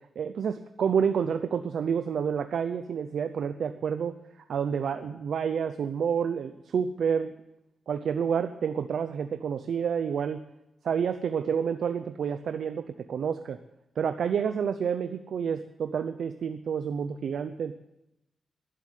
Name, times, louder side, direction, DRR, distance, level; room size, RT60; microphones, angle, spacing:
voice 1, 0.2-7.3 7.9-10.4 10.8-13.6 14.0-17.8, right 7 dB, 75° right, 9 dB, 0.7 m, -29 dB
11.5 x 11.0 x 9.2 m, 0.90 s
cardioid pair, 90°, 0 cm